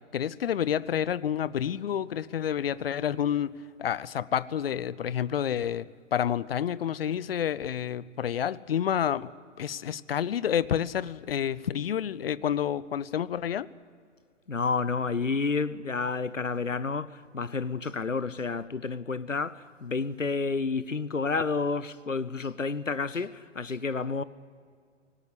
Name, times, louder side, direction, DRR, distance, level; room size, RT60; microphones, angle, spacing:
voice 1, 0.1-3.5 3.8-5.9 6.1-9.3 9.6-13.7, left 9 dB, 50° left, 0.7 m, -29 dB
voice 2, 14.5-24.2, left 4 dB, 90° left, 0.9 m, -30 dB
18.5 x 17.5 x 8.4 m
figure-of-eight pair, 120°, 37 cm